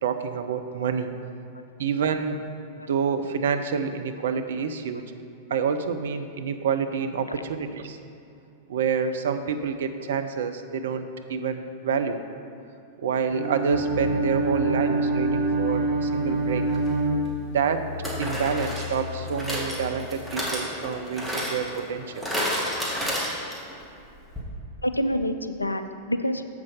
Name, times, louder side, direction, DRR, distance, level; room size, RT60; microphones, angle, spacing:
voice 1, 0.0-1.1 1.8-2.4 2.9-5.0 5.5-8.0 8.7-12.2 13.0-16.6 17.5-17.8 18.2-22.2, right 6 dB, 65° right, 8 dB, 0.5 m, -28 dB
Bowed string instrument, 13.3-17.9, right 3 dB, 20° right, 1.2 m, -26 dB
sound 1, 13.7-19.5, left 4 dB, 30° left, 2.1 m, -36 dB
sound 2, 16.7-16.9 18.0-23.8 24.1-24.2 24.4-24.5, equal, ahead, 1.9 m, -31 dB
voice 2, 24.8-26.4, equal, 90° left, 9 dB, 0.4 m, -28 dB
7.5 x 6.0 x 5.6 m, 2.6 s
figure-of-eight pair, 95°, 0 cm